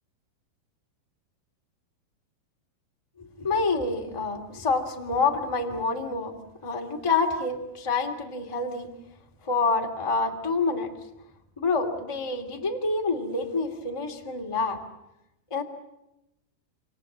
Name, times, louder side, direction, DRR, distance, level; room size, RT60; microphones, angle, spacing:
voice 1, 3.2-6.3 6.6-8.9 9.4-10.9 11.6-14.8 15.5-15.6, left 3 dB, 10° left, 3 dB, 1.9 m, -27 dB
28.5 x 26.0 x 7.5 m, 0.92 s
omnidirectional pair, 4.3 m